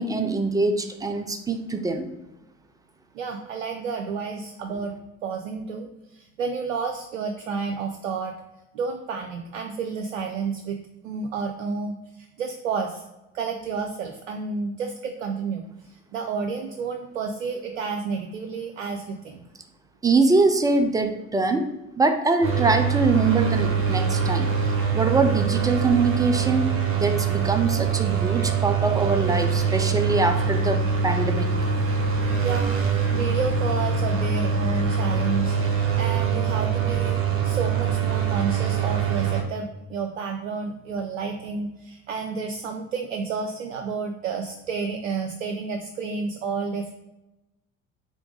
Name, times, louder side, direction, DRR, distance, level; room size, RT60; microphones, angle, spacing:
voice 1, 0.0-2.1 20.0-21.7 22.0-24.5 24.9-26.7 27.0-31.5, right 3 dB, 10° right, 6 dB, 0.3 m, -23 dB
voice 2, 3.1-4.9 5.2-8.4 8.7-10.8 11.0-13.0 13.3-19.4 32.4-46.9, right 5 dB, 70° right, 4 dB, 0.5 m, -31 dB
sound 1, 22.4-39.4, right 6 dB, 35° right, 1.2 m, -24 dB
3.7 x 3.4 x 3.7 m, 0.95 s
figure-of-eight pair, 55°, 39 cm